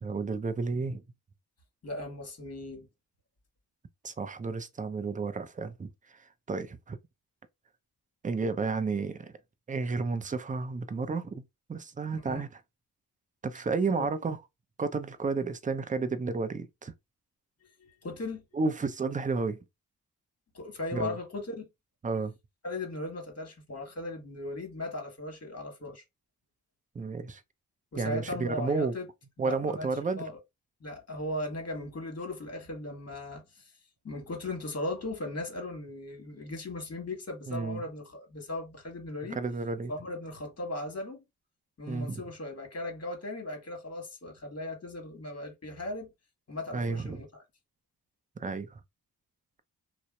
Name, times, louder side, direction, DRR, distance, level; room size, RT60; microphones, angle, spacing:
voice 1, 0.0-1.0 4.0-5.9 6.2-7.0 8.2-9.3 9.7-11.4 11.7-12.6 13.4-14.4 14.8-16.9 18.5-19.6 20.9-21.2 22.0-22.3 26.9-27.4 28.0-28.9 29.4-30.2 37.5-37.8 39.4-39.9 41.9-42.2 46.7-47.2 48.4-48.8, right 4 dB, 20° right, 0.4 m, -32 dB
voice 2, 1.8-2.9 12.1-12.4 14.0-14.1 17.8-18.4 20.5-21.7 22.6-26.0 27.9-29.1 29.4-29.9 30.1-30.4 30.8-33.7 34.0-39.4 39.9-41.2 41.8-46.1 46.5-47.4, left 2 dB, 40° left, 1.3 m, -37 dB
2.7 x 2.0 x 2.2 m
cardioid pair, 50°, 39 cm